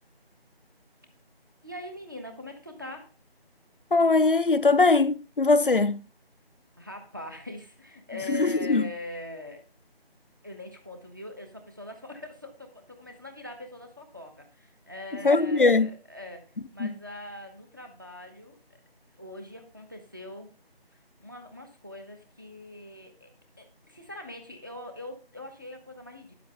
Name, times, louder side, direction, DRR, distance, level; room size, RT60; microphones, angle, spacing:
voice 1, 1.6-3.1 6.8-9.7 10.4-18.6 19.2-20.5 21.2-23.3 23.6-26.3, left 2 dB, 20° right, 1.0 m, -42 dB
voice 2, 3.9-6.0 8.3-8.9 15.2-15.9 16.8-16.9, left 3 dB, 55° left, 0.6 m, -21 dB
10.0 x 7.8 x 3.4 m
figure-of-eight pair, 175°, 31 cm